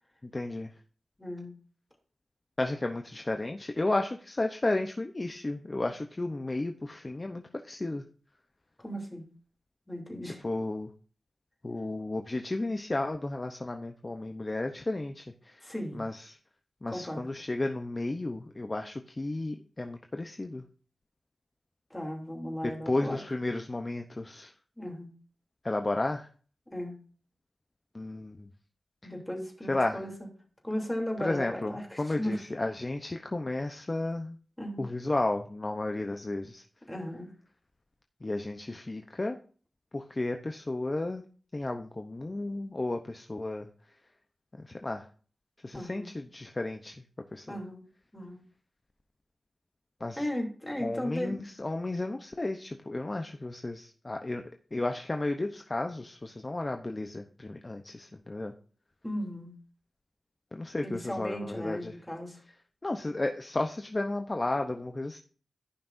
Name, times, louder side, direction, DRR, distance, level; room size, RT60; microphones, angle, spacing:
voice 1, 0.3-0.7 2.6-8.0 10.2-10.9 11.6-15.6 15.9-16.4 16.8-20.6 22.6-24.5 25.6-26.3 27.9-28.5 29.0-29.1 29.7-30.0 31.2-34.4 34.8-36.6 38.2-39.3 39.9-41.2 41.5-43.7 44.6-45.1 45.6-47.0 47.3-47.6 50.0-50.3 50.8-54.4 54.7-58.5 60.5-61.9 62.8-65.2, left 2 dB, 30° left, 5 dB, 0.7 m, -33 dB
voice 2, 1.2-1.5 8.8-9.2 9.9-10.4 15.6-16.0 16.9-17.2 21.9-23.2 24.8-25.1 26.7-27.0 29.0-30.1 30.6-32.4 34.6-34.8 36.9-37.3 45.7-46.1 47.5-47.8 48.1-48.4 50.2-51.4 59.0-59.5 60.8-62.4, equal, 10° left, 0 dB, 3.1 m, -36 dB
15.5 x 5.8 x 2.6 m, 0.41 s
wide cardioid pair, 75°, 0 cm